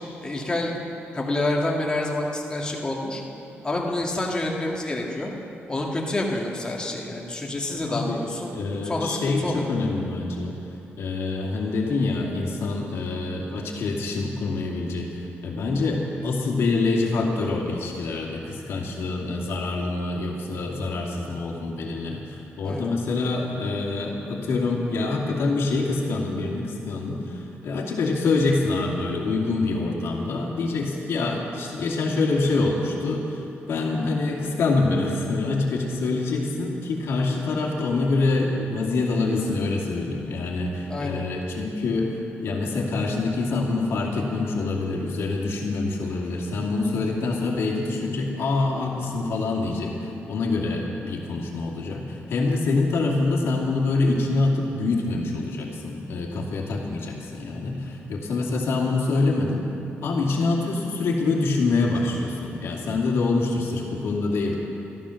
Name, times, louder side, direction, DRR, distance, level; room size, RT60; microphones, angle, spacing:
voice 1, 0.2-0.8 1.1-3.2 3.6-5.3 5.7-9.7 15.9-16.0 22.6-22.9 40.9-41.2, left 2 dB, 20° left, -1 dB, 1.9 m, -28 dB
voice 2, 7.8-8.2 8.5-10.5 11.0-15.1 15.4-59.7 60.0-64.5, left 3 dB, 70° left, -1 dB, 2.4 m, -25 dB
13.0 x 13.0 x 6.4 m, 2.9 s
cardioid pair, 120°, 4 cm